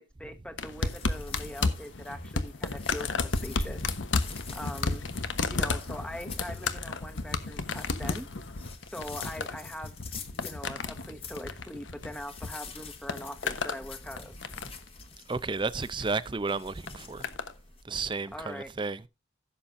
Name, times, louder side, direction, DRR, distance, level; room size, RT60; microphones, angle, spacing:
voice 1, 0.0-3.8 4.5-5.1 5.5-8.3 8.8-10.0 10.3-14.3 18.3-18.7, equal, 5° left, 1.2 m, -42 dB
sound 1, 0.6-12.5 12.8-13.8 14.2-14.9 15.8-16.1 16.9-17.5 18.4-18.5, left 3 dB, 85° left, 1.1 m, -33 dB
sound 2, 0.8-17.8, left 4 dB, 30° left, 1.4 m, -47 dB
voice 2, 15.3-17.3 17.8-19.0, right 4 dB, 25° right, 0.5 m, -32 dB
15.5 x 7.3 x 2.6 m
head